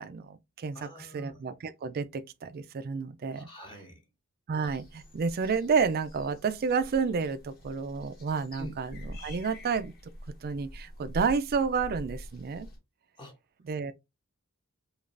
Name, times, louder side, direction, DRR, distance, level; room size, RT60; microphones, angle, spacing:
voice 1, 0.0-3.5 4.5-9.9 10.4-12.7 13.6-13.9, right 5 dB, 45° right, 0.4 m, -30 dB
voice 2, 0.7-1.4 3.3-4.0 8.6-8.7 13.2-13.4, equal, 20° left, 0.7 m, -45 dB
sound 1, 4.6-12.8, equal, 45° left, 1.3 m, -45 dB
5.1 x 2.4 x 2.4 m
head